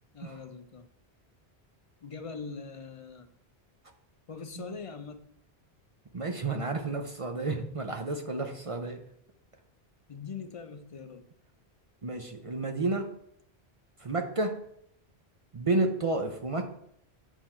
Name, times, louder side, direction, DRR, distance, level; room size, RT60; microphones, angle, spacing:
voice 1, 0.1-0.9 2.0-3.3 4.3-5.3 7.4-7.7 10.1-11.3, left 5 dB, 45° left, 8 dB, 0.4 m, -42 dB
voice 2, 6.1-9.0 12.0-13.1 14.0-14.6 15.5-16.7, right 2 dB, 40° right, 4 dB, 0.6 m, -31 dB
7.9 x 4.5 x 4.3 m, 0.73 s
omnidirectional pair, 1.1 m